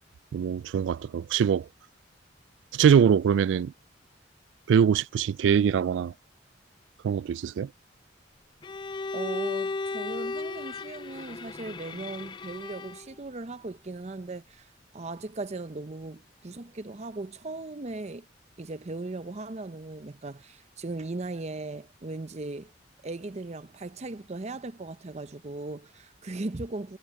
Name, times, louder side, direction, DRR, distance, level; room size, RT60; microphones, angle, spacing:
voice 1, 0.3-1.7 2.7-3.7 4.7-6.1 7.0-7.7, right 7 dB, 85° right, 0.3 m, -23 dB
Bowed string instrument, 8.6-13.1, left 3 dB, 25° left, 0.3 m, -35 dB
voice 2, 9.1-14.7 14.9-18.3 18.6-22.7 23.0-27.0, right 2 dB, 40° right, 0.7 m, -38 dB
head